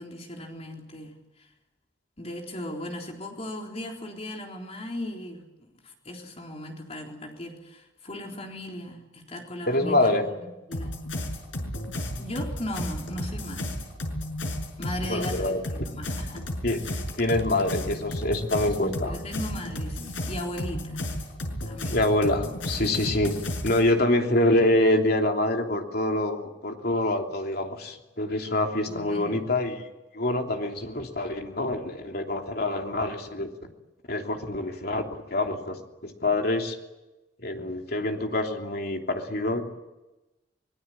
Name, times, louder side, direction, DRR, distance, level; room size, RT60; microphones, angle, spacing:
voice 1, 0.0-1.5 2.2-5.4 5.8-10.3 10.7-10.9 12.2-13.7 14.8-16.4 16.8-17.0 19.0-21.0 21.6-22.0 28.9-29.4, left 1 dB, 35° left, 1 dB, 3.8 m, -37 dB
voice 2, 9.7-10.3 15.1-15.6 16.6-16.8 17.2-19.2 21.9-23.3 23.6-29.9 30.1-33.7 34.1-36.8 37.4-39.6, left 1 dB, 55° left, 3 dB, 3.1 m, -26 dB
sound 1, 10.7-23.8, left 1 dB, 80° left, 6.1 m, -33 dB
24.5 x 22.0 x 8.7 m, 1.0 s
head